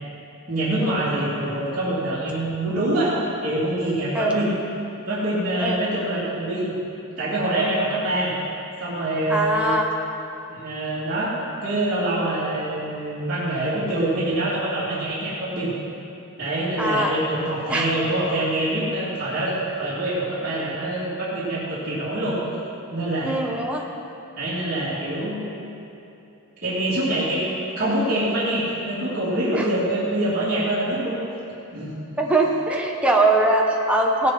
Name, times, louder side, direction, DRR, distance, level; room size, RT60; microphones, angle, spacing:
voice 1, 0.5-4.5 5.1-6.7 7.2-8.3 8.8-9.7 10.5-11.3 11.6-15.7 16.4-22.4 22.9-23.4 24.3-25.6 26.6-27.4 27.8-31.2 31.7-31.9, right 1 dB, 40° right, -11 dB, 2.9 m, -25 dB
voice 2, 9.3-9.9 16.8-17.1 17.7-17.9 23.2-23.8 29.5-29.7 32.2-34.3, right 2 dB, 5° right, -1 dB, 1.1 m, -21 dB
16.5 x 10.5 x 4.3 m, 2.8 s
head